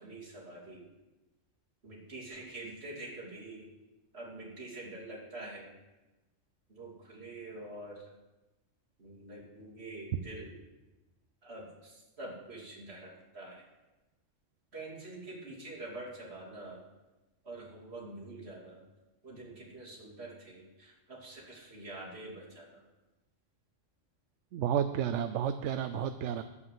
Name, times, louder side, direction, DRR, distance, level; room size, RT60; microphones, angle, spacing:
voice 1, 0.0-0.8 1.8-3.6 4.1-5.7 6.8-7.9 9.0-10.5 11.5-11.6 12.2-13.1 13.3-13.5 14.7-16.8 17.5-18.8 19.2-20.6 21.2-22.6 25.7-25.8, right 2 dB, 55° right, -4 dB, 3.3 m, -45 dB
voice 2, 24.5-26.4, right 9 dB, 70° right, 11 dB, 0.9 m, -31 dB
9.8 x 8.4 x 7.6 m, 1.1 s
omnidirectional pair, 1.3 m